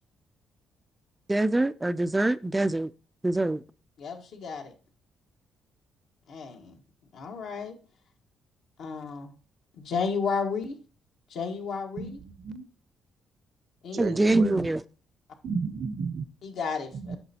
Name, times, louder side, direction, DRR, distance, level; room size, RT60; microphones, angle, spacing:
voice 1, 1.3-2.9 3.2-3.6 14.0-14.8, right 2 dB, 15° right, 0.3 m, -24 dB
voice 2, 4.0-4.7 6.3-6.8 7.1-7.8 8.8-9.3 9.7-10.7 11.3-12.2 13.8-14.1 16.4-17.2, left 5 dB, 75° left, 1.4 m, -33 dB
voice 3, 12.0-12.7 13.9-14.7 15.4-16.2 16.9-17.2, right 5 dB, 55° right, 0.6 m, -33 dB
8.8 x 6.1 x 2.8 m
cardioid pair, 90°, 0 cm